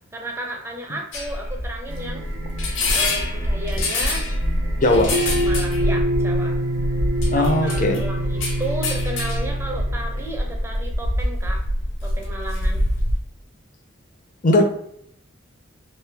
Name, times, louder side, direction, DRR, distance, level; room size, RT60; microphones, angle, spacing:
voice 1, 0.1-2.3 2.9-4.3 4.9-5.0 5.3-6.6 7.3-11.6 12.0-12.8, right 1 dB, 15° right, 1 dB, 0.5 m, -33 dB
sound 1, 1.1-13.2, left 1 dB, 80° left, 0.9 m, -25 dB
sound 2, 1.9-11.6, right 2 dB, 85° right, 0.8 m, -41 dB
voice 2, 4.8-5.1 7.3-8.1 14.4-14.6, left 1 dB, 40° left, 4 dB, 0.5 m, -18 dB
sound 3, 5.1-10.3, right 1 dB, 70° right, 0.4 m, -25 dB
3.2 x 2.7 x 3.4 m, 0.71 s
head